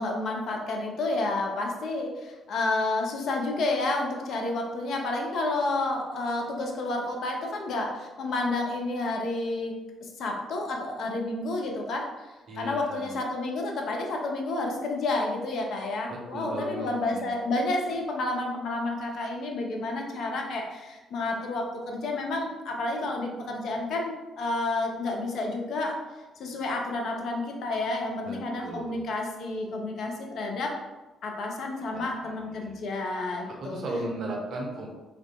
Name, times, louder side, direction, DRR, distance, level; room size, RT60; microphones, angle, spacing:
voice 1, 0.0-9.7 10.0-12.3 12.6-26.0 26.4-30.8 31.2-33.8, left 2 dB, 55° left, 1 dB, 0.4 m, -30 dB
voice 2, 12.5-13.1 16.1-17.3 28.2-29.0 31.9-32.8 33.6-34.9, right 2 dB, 55° right, 0 dB, 0.5 m, -37 dB
2.3 x 2.2 x 2.5 m, 1.2 s
figure-of-eight pair, 45°, 0 cm